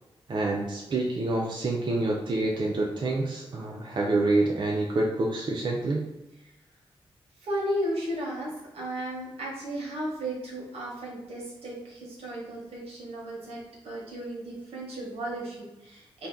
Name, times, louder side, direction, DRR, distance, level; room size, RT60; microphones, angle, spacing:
voice 1, 0.3-6.1, right 2 dB, 50° right, -1 dB, 0.5 m, -27 dB
voice 2, 7.4-16.3, right 1 dB, 85° right, -3 dB, 1.0 m, -34 dB
2.7 x 2.2 x 3.5 m, 0.99 s
cardioid pair, 75°, 10 cm